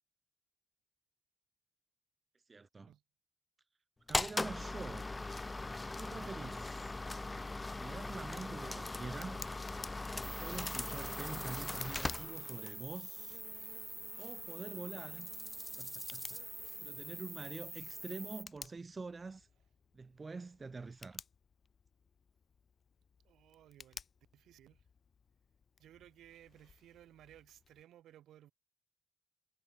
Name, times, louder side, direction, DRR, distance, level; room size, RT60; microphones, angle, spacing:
voice 1, 2.5-2.9 4.1-5.1 6.0-6.9 7.8-9.4 10.1-13.4 14.2-15.3 15.8-16.4 16.8-19.5 19.9-21.2, right 4 dB, 25° right, 1.1 m, -46 dB
sound 1, 4.1-12.8, left 2 dB, 15° left, 1.5 m, -40 dB
Tick, 8.2-27.8, left 6 dB, 40° left, 3.2 m, -56 dB
sound 2, 10.2-18.4, right 1 dB, 5° right, 0.7 m, -45 dB
voice 2, 23.2-24.0 24.3-24.8 25.8-28.5, right 12 dB, 80° right, 3.7 m, -59 dB
cardioid pair, 120°, 0 cm